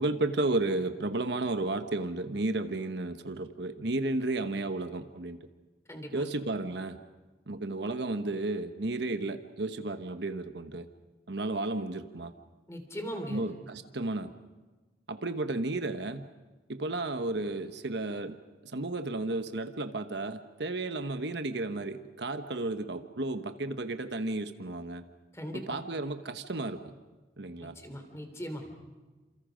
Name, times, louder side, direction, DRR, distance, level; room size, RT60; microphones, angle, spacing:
voice 1, 0.0-5.4 6.1-7.0 7.5-10.9 11.3-12.3 13.3-14.3 15.1-16.2 16.7-18.3 18.7-25.0 25.5-26.8 27.4-27.7, right 2 dB, 70° right, 8 dB, 1.1 m, -33 dB
voice 2, 5.9-6.3 12.7-13.5 25.3-25.8 27.6-28.7, equal, 15° left, 6 dB, 2.9 m, -39 dB
29.0 x 27.5 x 5.1 m, 1.2 s
head